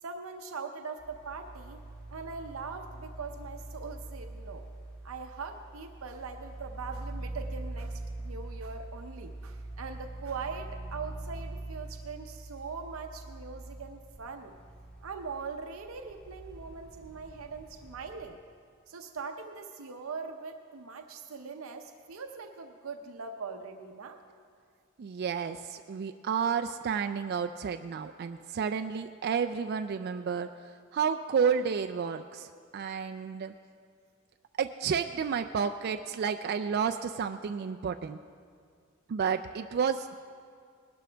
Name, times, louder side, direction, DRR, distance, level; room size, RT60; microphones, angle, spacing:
voice 1, 0.0-1.8 2.1-4.6 5.0-14.5 15.0-18.4 18.9-24.2, right 5 dB, 80° right, 5 dB, 0.7 m, -41 dB
sound 1, 1.0-18.2, right 2 dB, 5° left, 2.3 m, -43 dB
voice 2, 25.0-30.5 30.9-33.5 34.6-38.2 39.1-40.1, right 6 dB, 50° right, 7 dB, 0.3 m, -31 dB
19.5 x 12.0 x 3.4 m, 2.2 s
head